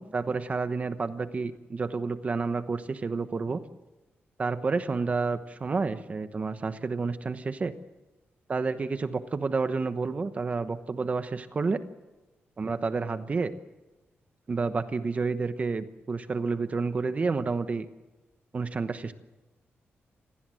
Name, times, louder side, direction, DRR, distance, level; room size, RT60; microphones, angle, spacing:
voice 1, 0.0-3.6 4.4-7.7 8.5-11.8 12.6-13.5 14.5-17.9 18.5-19.1, right 4 dB, 35° right, 10 dB, 1.0 m, -30 dB
27.5 x 19.0 x 7.7 m, 1.1 s
wide cardioid pair, 140°, 4 cm